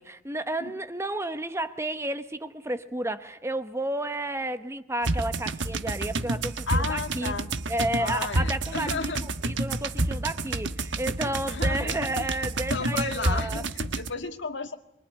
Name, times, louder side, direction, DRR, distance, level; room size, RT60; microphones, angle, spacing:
voice 1, 0.0-7.3 7.7-13.6, right 1 dB, 15° right, 10 dB, 1.0 m, -32 dB
sound 1, 5.0-14.1, right 2 dB, 65° right, 1.3 m, -29 dB
voice 2, 6.7-7.5 8.0-9.3 11.2-12.3 12.7-14.8, left 4 dB, 65° left, 7 dB, 1.9 m, -33 dB
24.0 x 24.0 x 9.7 m, 0.79 s
head